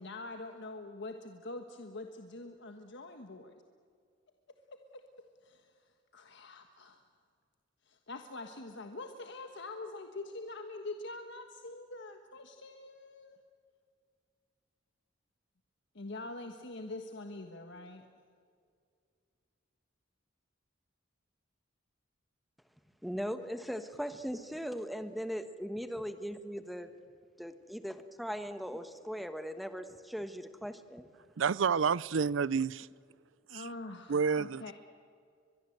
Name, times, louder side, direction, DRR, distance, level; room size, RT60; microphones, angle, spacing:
voice 1, 0.0-3.6 5.4-5.6 6.1-7.0 7.9-13.4 15.9-18.1 33.5-34.7, left 2 dB, 65° left, 1.4 m, -44 dB
voice 2, 23.0-26.9 27.4-31.0, equal, ahead, 1.3 m, -39 dB
voice 3, 31.4-32.9 33.5-33.7 34.1-34.7, right 6 dB, 70° right, 0.5 m, -29 dB
23.5 x 22.0 x 7.9 m
head